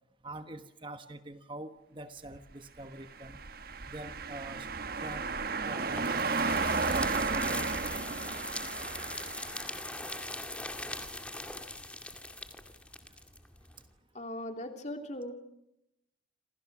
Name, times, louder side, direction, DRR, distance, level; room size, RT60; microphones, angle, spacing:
voice 1, 0.2-3.4 3.9-4.7 5.0-5.2 5.6-6.2 7.1-7.5, right 1 dB, 25° right, 8 dB, 1.2 m, -45 dB
sound 1, 3.1-9.9, right 4 dB, 50° right, 1.2 m, -33 dB
sound 2, 5.0-13.8, left 2 dB, 5° left, 2.2 m, -41 dB
voice 2, 14.1-15.3, left 1 dB, 35° left, 5 dB, 3.1 m, -39 dB
29.0 x 27.0 x 6.1 m, 0.85 s
head